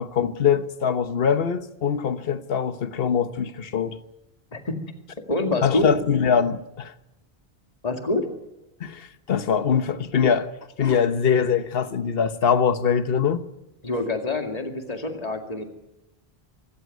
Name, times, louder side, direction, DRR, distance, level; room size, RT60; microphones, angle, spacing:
voice 1, 0.0-4.0 5.6-6.9 8.8-10.5 10.8-13.4, left 7 dB, 65° left, 1.3 m, -23 dB
voice 2, 5.3-5.9 7.8-8.3 13.8-15.6, left 2 dB, 40° left, 2.4 m, -26 dB
25.5 x 14.5 x 9.4 m
omnidirectional pair, 1.0 m